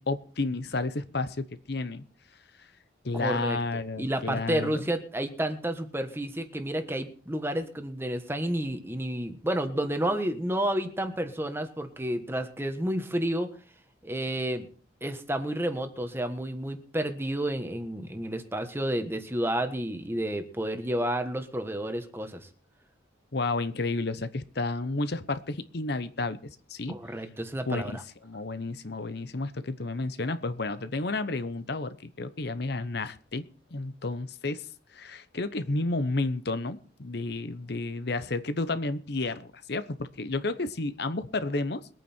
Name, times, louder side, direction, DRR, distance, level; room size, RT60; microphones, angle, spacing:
voice 1, 0.0-2.0 2.6-2.7 3.0-4.9 23.3-27.0 27.7-33.5 33.7-41.9, left 3 dB, 60° left, 12 dB, 0.9 m, -31 dB
voice 2, 3.1-3.6 4.0-13.5 14.0-14.7 15.0-22.5 26.9-28.0, right 1 dB, 10° right, 7 dB, 1.4 m, -30 dB
22.0 x 9.1 x 4.5 m, 0.41 s
head